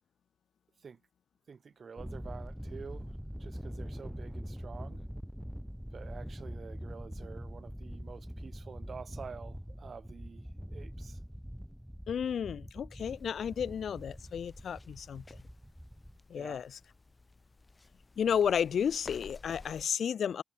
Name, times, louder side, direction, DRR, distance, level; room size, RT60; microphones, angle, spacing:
voice 1, 1.5-5.1 5.9-11.2 16.3-16.6, right 5 dB, 65° right, 1.9 m, -48 dB
Thunder, 2.0-16.2, equal, ahead, 2.4 m, -44 dB
voice 2, 12.1-15.2 16.3-16.8 18.2-20.4, left 8 dB, 80° left, 0.9 m, -32 dB
sound 1, 13.0-19.8, left 3 dB, 35° left, 5.5 m, -54 dB
supercardioid pair, 40°, 0 cm